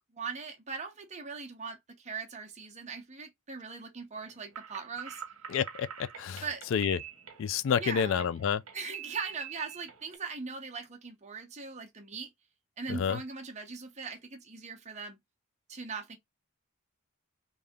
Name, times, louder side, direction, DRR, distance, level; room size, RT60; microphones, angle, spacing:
voice 1, 0.1-5.2 6.4-6.6 7.8-8.3 8.7-12.3 12.8-15.2 15.7-16.2, right 5 dB, 30° right, 0.8 m, -40 dB
sound 1, 4.1-10.2, right 8 dB, 70° right, 1.1 m, -46 dB
voice 2, 5.5-5.9 6.2-6.4 6.7-7.0 7.4-8.6 12.9-13.2, left 7 dB, 60° left, 0.3 m, -28 dB
3.4 x 2.7 x 3.5 m
head